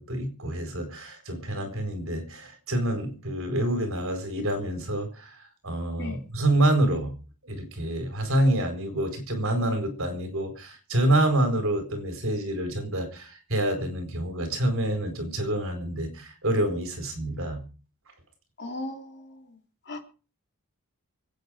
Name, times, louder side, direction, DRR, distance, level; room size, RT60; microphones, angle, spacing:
voice 1, 0.0-7.1 7.4-17.6, right 1 dB, 60° right, 7 dB, 4.4 m, -27 dB
voice 2, 18.6-19.4 19.9-20.0, left 2 dB, 50° left, 4 dB, 3.3 m, -36 dB
24.5 x 9.1 x 5.0 m, 0.37 s
head